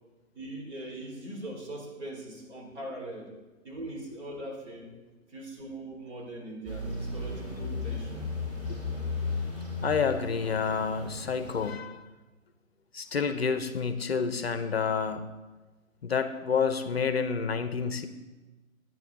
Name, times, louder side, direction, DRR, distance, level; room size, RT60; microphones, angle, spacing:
voice 1, 0.3-3.4 3.6-4.9 5.3-8.4, right 1 dB, 55° right, -1 dB, 3.4 m, -41 dB
sound 1, 6.6-11.7, left 3 dB, 30° right, 3.7 m, -35 dB
voice 2, 9.8-12.0 12.9-15.3 16.0-18.1, left 5 dB, 45° left, 11 dB, 0.6 m, -29 dB
11.5 x 9.3 x 3.9 m, 1.2 s
figure-of-eight pair, 145°, 42 cm